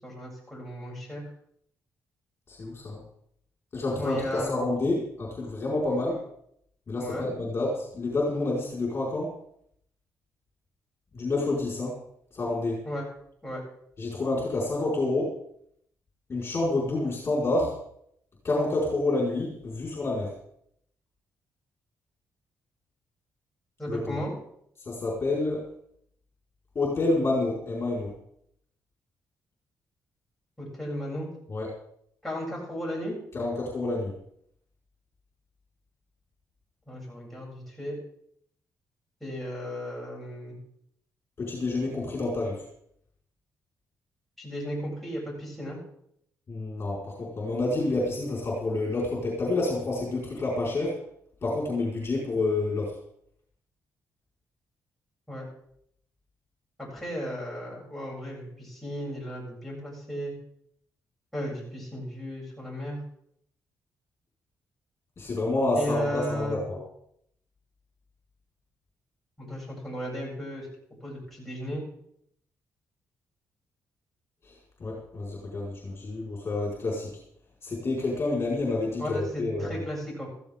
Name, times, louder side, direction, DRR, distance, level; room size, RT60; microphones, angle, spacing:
voice 1, 0.0-1.2 4.0-4.5 7.0-7.3 12.8-13.0 13.4-13.6 23.8-24.3 30.6-31.3 32.2-33.1 36.9-38.0 39.2-40.6 44.4-45.8 55.3-55.4 56.8-60.3 61.3-63.0 65.8-66.6 69.4-70.7 71.0-71.8 79.0-80.3, equal, 5° left, -4 dB, 7.9 m, -35 dB
voice 2, 2.5-3.0 3.7-6.2 6.9-9.3 11.1-12.0 12.3-12.8 14.0-15.4 16.3-17.8 18.4-20.3 23.9-24.2 24.8-25.6 26.7-28.1 31.5-31.7 33.3-34.1 41.4-42.6 46.5-51.0 51.4-53.0 65.2-66.8 74.4-74.5 74.8-77.1 77.6-79.8, left 2 dB, 40° left, -3 dB, 5.1 m, -28 dB
15.5 x 14.5 x 3.8 m, 0.70 s
cardioid pair, 95°, 6 cm